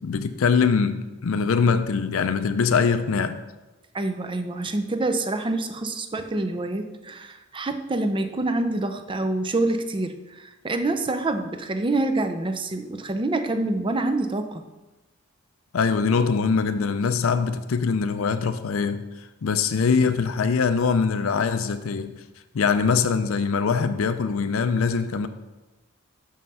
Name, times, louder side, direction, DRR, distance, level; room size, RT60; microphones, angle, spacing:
voice 1, 0.0-3.4 15.7-19.0 19.4-22.1 22.5-25.3, left 5 dB, 80° left, 10 dB, 0.5 m, -23 dB
voice 2, 3.9-14.6, right 2 dB, 25° right, 7 dB, 0.5 m, -26 dB
6.3 x 5.5 x 5.6 m, 1.1 s
head